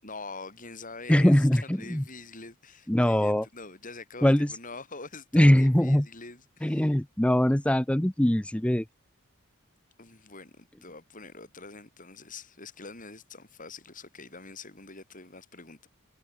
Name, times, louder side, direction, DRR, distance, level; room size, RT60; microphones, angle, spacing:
voice 1, 0.0-6.9 10.0-15.9, left 3 dB, 40° left, 7.0 m, -45 dB
voice 2, 1.1-2.0 2.9-3.5 4.2-4.5 5.3-6.1 6.6-8.8, left 1 dB, 5° left, 0.5 m, -22 dB
head